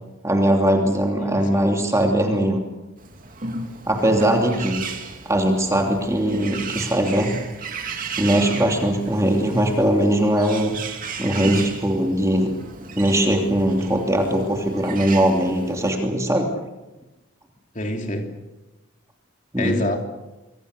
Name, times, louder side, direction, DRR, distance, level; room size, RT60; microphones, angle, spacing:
voice 1, 0.2-2.6 3.9-4.8 5.2-7.3 8.2-10.8 11.2-12.5 13.0-16.5 19.5-19.8, right 1 dB, 15° right, 2 dB, 2.9 m, -20 dB
voice 2, 1.2-1.7 17.7-18.3 19.6-20.0, left 1 dB, 40° left, 3 dB, 3.1 m, -27 dB
Bird, 3.0-15.9, right 5 dB, 45° right, 2.7 m, -35 dB
26.0 x 24.5 x 6.6 m, 1.0 s
head